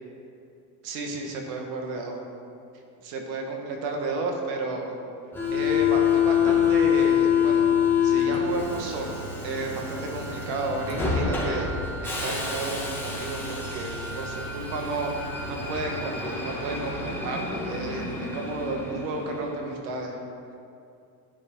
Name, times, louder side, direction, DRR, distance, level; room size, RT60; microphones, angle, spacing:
voice 1, 0.8-2.2 3.0-5.0 5.5-7.7 8.0-11.7 12.0-20.2, right 2 dB, 75° right, 2 dB, 1.9 m, -32 dB
Subway metro underground, 5.3-19.7, left 7 dB, 5° left, 2.2 m, -26 dB
12.0 x 9.9 x 4.0 m, 2.6 s
supercardioid pair, 110°, 48 cm